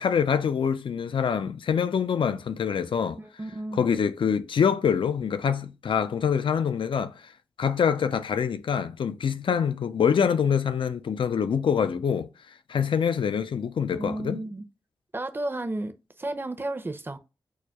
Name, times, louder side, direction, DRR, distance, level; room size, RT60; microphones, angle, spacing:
voice 1, 0.0-3.2 3.7-7.2 7.6-12.3 12.7-14.4, left 7 dB, 65° left, 0.4 m, -25 dB
voice 2, 3.2-3.9 13.9-14.6 15.1-15.9 16.2-17.2, right 2 dB, 25° right, 0.6 m, -32 dB
6.2 x 2.2 x 2.3 m
cardioid pair, 40°, 9 cm